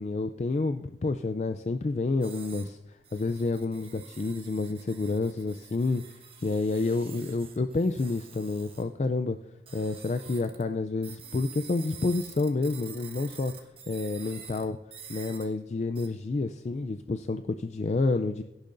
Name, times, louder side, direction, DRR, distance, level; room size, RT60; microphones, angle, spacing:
voice 1, 0.0-2.8 3.1-6.0 6.4-9.4 9.7-13.5 13.9-14.8 15.1-18.4, left 3 dB, 40° left, 9 dB, 0.3 m, -29 dB
sound 1, 2.2-2.7 3.0-8.8 9.7-10.6 11.0-14.6 14.9-15.5 15.9-16.1, right 7 dB, 30° right, 1.3 m, -48 dB
17.0 x 10.5 x 2.6 m, 0.95 s
head